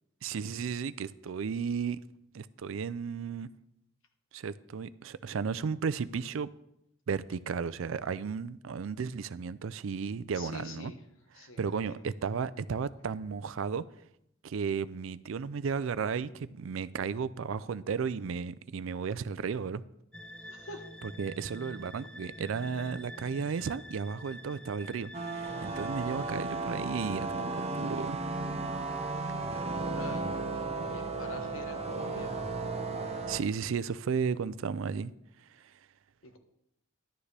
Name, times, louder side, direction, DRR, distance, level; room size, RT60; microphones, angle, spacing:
voice 1, 0.2-2.0 2.3-3.5 4.3-6.5 7.1-10.9 11.4-13.8 14.4-19.8 21.2-28.2 33.3-35.1, right 6 dB, 75° right, 0.4 m, -34 dB
voice 2, 10.3-11.0 11.3-12.0 20.4-20.9 29.3-32.3 36.2-36.4, left 3 dB, 80° left, 1.2 m, -46 dB
sound 1, 20.1-27.7, equal, 5° left, 0.5 m, -48 dB
sound 2, 25.1-33.4, right 3 dB, 30° right, 0.7 m, -34 dB
11.5 x 9.5 x 3.3 m
head